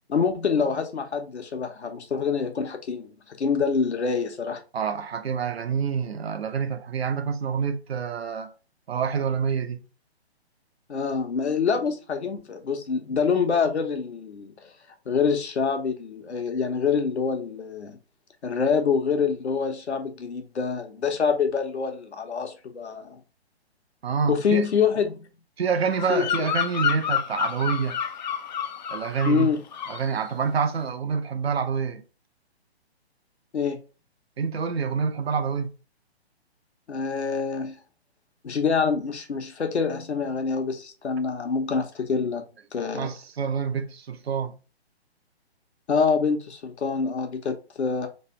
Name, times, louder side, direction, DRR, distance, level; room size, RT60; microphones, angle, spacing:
voice 1, 0.1-4.6 10.9-14.7 15.1-18.0 18.4-23.2 24.3-25.3 26.1-26.5 29.3-29.6 33.5-33.8 36.9-37.8 38.4-42.4 42.7-43.1 45.9-48.1, left 5 dB, 85° left, 1.1 m, -26 dB
voice 2, 4.7-8.5 8.9-9.8 24.0-24.7 25.6-28.0 28.9-29.5 29.9-32.0 34.4-35.7 42.9-44.6, right 6 dB, 65° right, 0.8 m, -27 dB
Bird vocalization bird call bird song, 25.9-29.5 29.7-30.1, left 8 dB, 45° left, 0.4 m, -29 dB
3.3 x 2.7 x 4.4 m
hypercardioid pair, 145°, 33 cm